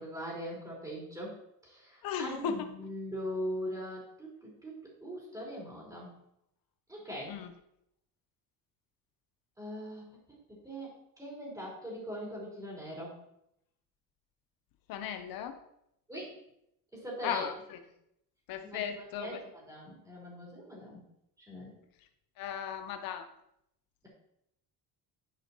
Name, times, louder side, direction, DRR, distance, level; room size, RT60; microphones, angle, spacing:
voice 1, 0.0-1.4 1.6-6.1 6.9-7.4 9.6-10.2 10.5-13.2 16.1-16.3 16.9-17.5 18.6-21.0 21.4-21.7, equal, 10° right, -4 dB, 4.8 m, -41 dB
voice 2, 2.0-2.7 7.3-7.5 14.9-15.6 17.2-17.8 18.5-19.4 22.4-23.3, left 8 dB, 70° left, 7 dB, 0.9 m, -36 dB
11.0 x 10.5 x 3.1 m, 0.79 s
cardioid pair, 170°, 37 cm